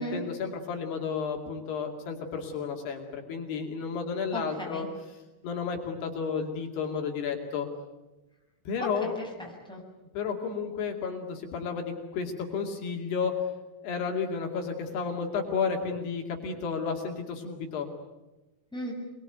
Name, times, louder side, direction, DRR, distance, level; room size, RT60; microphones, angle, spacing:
voice 1, 0.0-4.9 5.4-7.7 8.7-9.2 10.1-13.3 13.8-17.9, left 5 dB, 70° left, 2 dB, 4.5 m, -32 dB
voice 2, 4.3-4.9 8.8-9.8 18.7-18.9, equal, ahead, -1 dB, 6.9 m, -37 dB
26.5 x 22.5 x 9.2 m, 1.1 s
omnidirectional pair, 4.8 m